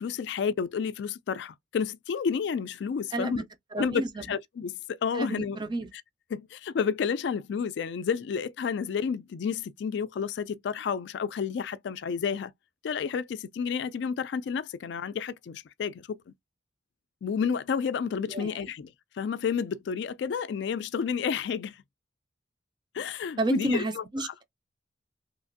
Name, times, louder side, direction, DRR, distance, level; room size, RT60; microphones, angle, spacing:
voice 1, 0.0-3.4 3.8-4.0 4.3-5.6 6.3-12.5 12.8-16.2 17.2-18.9 19.2-21.7 22.9-24.3, left 6 dB, 65° left, 0.3 m, -30 dB
voice 2, 3.1-3.4 3.7-4.3 5.1-5.9 18.3-18.6 23.4-24.4, right 2 dB, 25° right, 0.4 m, -31 dB
3.0 x 2.5 x 2.5 m
head